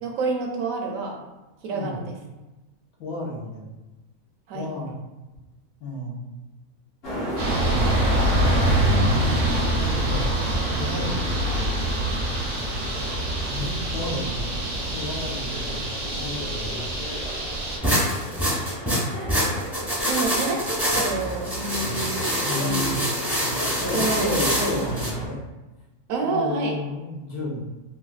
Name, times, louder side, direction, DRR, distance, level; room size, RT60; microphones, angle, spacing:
voice 1, 0.0-1.2 1.6-2.2 4.5-4.7 8.9-9.1 12.4-12.6 20.1-22.2 22.6-22.9 23.9-24.2 26.1-26.8, right 3 dB, 75° right, 1 dB, 1.0 m, -28 dB
voice 2, 3.0-3.7 4.5-4.9 5.8-6.2 8.8-10.2 10.7-11.6 13.5-14.4 14.9-15.8 16.2-16.9 18.2-18.3 22.4-23.0 23.8-25.4 26.2-27.6, left 1 dB, 85° left, -5 dB, 1.4 m, -32 dB
sound 1, 7.0-25.3, equal, 50° left, 0.9 m, -35 dB
sound 2, 7.4-17.8, right 1 dB, 50° right, 0.6 m, -25 dB
sound 3, 17.8-25.1, equal, ahead, 0.5 m, -25 dB
4.1 x 2.3 x 2.3 m, 1.1 s
omnidirectional pair, 1.5 m